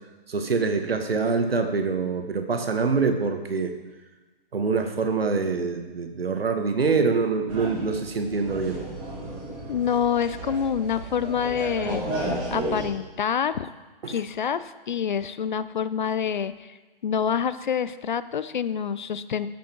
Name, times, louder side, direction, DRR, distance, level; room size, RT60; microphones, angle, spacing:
voice 1, 0.3-3.7 4.5-8.8 14.0-14.2, right 4 dB, 75° right, 6 dB, 1.4 m, -25 dB
sound 1, 7.5-12.9, right 1 dB, 15° right, 2.0 m, -33 dB
voice 2, 9.7-12.0 12.5-13.7 14.1-16.8 17.0-19.5, left 7 dB, 55° left, 15 dB, 0.5 m, -27 dB
13.0 x 5.5 x 4.5 m, 1.2 s
hypercardioid pair, 150°, 30 cm